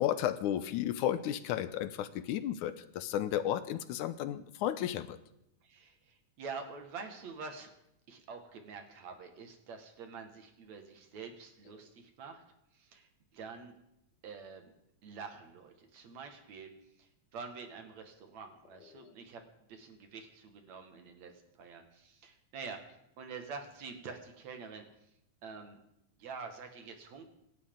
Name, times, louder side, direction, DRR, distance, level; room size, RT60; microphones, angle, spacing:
voice 1, 0.0-5.2 19.0-19.1, left 11 dB, 80° left, 12 dB, 2.2 m, -33 dB
voice 2, 5.6-7.7 8.1-12.4 12.7-13.7 14.2-14.7 15.0-16.7 17.0-19.4 19.7-21.3 21.6-22.8 23.2-24.8 25.4-25.8 26.2-27.3, right 5 dB, 65° right, 5 dB, 3.0 m, -46 dB
27.0 x 12.5 x 3.8 m, 0.83 s
omnidirectional pair, 3.6 m